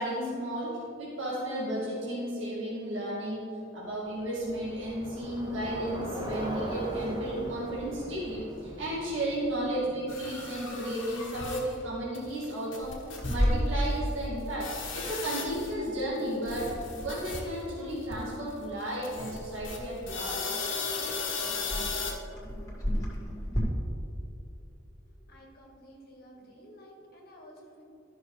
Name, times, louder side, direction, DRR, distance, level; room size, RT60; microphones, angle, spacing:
voice 1, 0.0-20.4, right 1 dB, 85° right, -8 dB, 2.2 m, -33 dB
Bicycle, 4.0-10.5, right 1 dB, 20° right, 1.1 m, -39 dB
sound 1, 10.1-11.7 12.1-12.2 12.4-12.5 12.7-13.5 13.8-13.9 14.6-15.9 16.2-17.7 18.1-18.3 19.0-22.1, left 4 dB, 80° left, 1.3 m, -36 dB
Clock, 13.2-23.6, equal, 15° left, 2.0 m, -35 dB
voice 2, 25.0-27.8, equal, 50° left, -1 dB, 1.5 m, -52 dB
13.0 x 6.0 x 3.3 m, 2.7 s
head